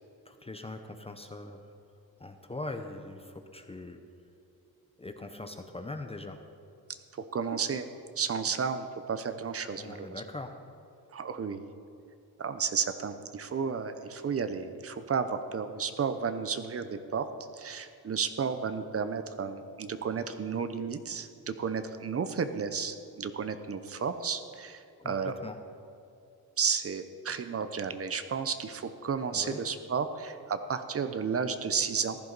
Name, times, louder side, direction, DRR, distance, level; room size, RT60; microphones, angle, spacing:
voice 1, 0.3-1.7 2.2-4.0 5.0-6.4 9.8-10.6 25.0-25.6 29.3-29.6, left 2 dB, 15° left, 6 dB, 0.7 m, -41 dB
voice 2, 7.1-7.9 8.2-10.2 11.1-11.6 12.4-17.3 17.5-25.3 26.6-32.2, right 6 dB, 40° right, 10 dB, 0.7 m, -32 dB
15.0 x 11.0 x 4.0 m, 2.6 s
cardioid pair, 110°, 37 cm